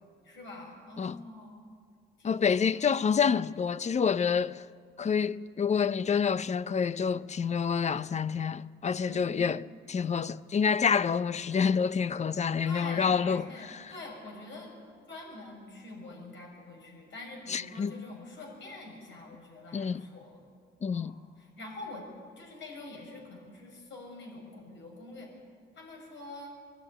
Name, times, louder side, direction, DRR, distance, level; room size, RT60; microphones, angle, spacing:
voice 1, 0.2-1.6 2.2-2.6 9.0-9.5 12.6-14.7 15.1-20.4 20.9-22.0 22.4-25.3 25.7-26.6, left 2 dB, 70° left, 6.4 m, -45 dB
voice 2, 2.2-4.6 5.0-13.5 13.8-13.9 17.5-17.9 19.7-20.0 20.8-21.1, left 6 dB, 35° left, 0.6 m, -28 dB
21.5 x 12.0 x 10.0 m
cardioid pair, 90°, 20 cm